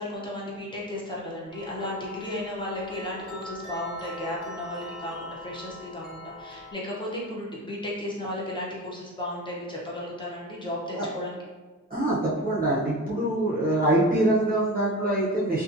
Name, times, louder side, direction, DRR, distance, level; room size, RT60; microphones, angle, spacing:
voice 1, 0.0-11.4, left 1 dB, 15° left, -5 dB, 0.6 m, -34 dB
sound 1, 1.5-6.7, left 1 dB, 80° left, 1.0 m, -42 dB
voice 2, 11.9-15.6, right 1 dB, 30° right, -7 dB, 0.5 m, -24 dB
2.5 x 2.4 x 2.5 m, 1.3 s
wide cardioid pair, 145°, 31 cm